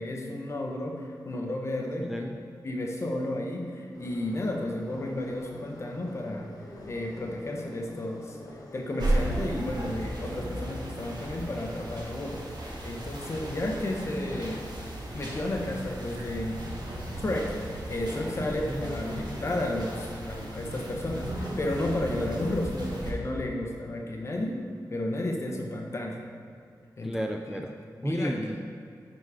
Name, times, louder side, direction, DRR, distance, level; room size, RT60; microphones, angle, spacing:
voice 1, 0.0-2.2 2.6-6.5 6.9-8.4 8.7-12.4 12.8-14.7 15.1-16.6 17.2-24.6 24.9-26.2 27.0-27.2 27.5-27.6 28.0-28.3, left 1 dB, 40° left, 1 dB, 0.9 m, -32 dB
voice 2, 2.0-2.4 18.7-18.8 27.0-27.7 28.0-28.6, equal, 5° right, 2 dB, 0.3 m, -32 dB
Subway metro underground, 3.9-16.5, left 1 dB, 55° left, 1.3 m, -49 dB
sound 1, 9.0-23.1, right 1 dB, 65° right, 1.4 m, -35 dB
9.8 x 4.1 x 4.8 m, 2.4 s
wide cardioid pair, 165°, 8 cm